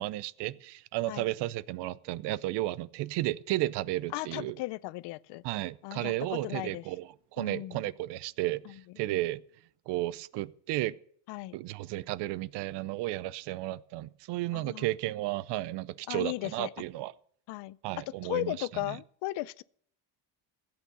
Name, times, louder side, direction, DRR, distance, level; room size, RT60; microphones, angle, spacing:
voice 1, 0.0-4.6 5.4-9.4 9.9-10.9 11.5-17.1 17.8-19.0, right 17 dB, 75° right, 0.7 m, -33 dB
voice 2, 4.1-5.4 5.8-6.8 7.4-7.8 11.3-11.6 14.5-14.8 16.1-16.7 17.5-17.8 18.2-19.6, left 19 dB, 80° left, 0.6 m, -36 dB
15.0 x 8.8 x 6.8 m
cardioid pair, 120°, 41 cm